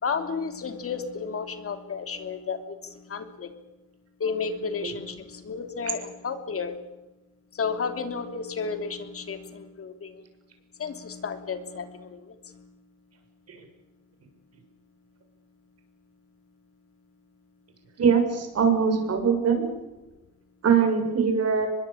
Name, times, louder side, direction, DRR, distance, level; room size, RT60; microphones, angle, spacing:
voice 1, 0.0-3.5 4.2-6.8 7.5-10.2 10.8-12.7, left 5 dB, 50° left, 8 dB, 3.3 m, -32 dB
voice 2, 18.0-19.7 20.6-21.7, right 6 dB, 55° right, 5 dB, 7.0 m, -22 dB
24.0 x 21.5 x 8.6 m, 1.0 s
cardioid pair, 90°, 30 cm